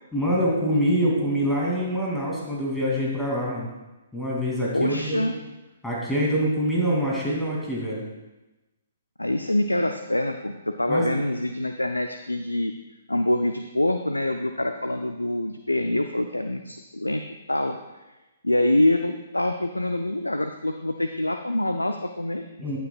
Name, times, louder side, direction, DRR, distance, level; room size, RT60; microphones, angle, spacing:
voice 1, 0.1-3.7 4.1-5.3 5.8-8.0 10.9-11.1 22.6-22.8, equal, 5° left, -5 dB, 2.6 m, -25 dB
voice 2, 4.7-5.3 9.2-12.7 13.1-17.8 18.4-22.5, left 1 dB, 85° left, 6 dB, 0.5 m, -25 dB
14.5 x 9.2 x 2.4 m, 1.1 s
figure-of-eight pair, 125°, 0 cm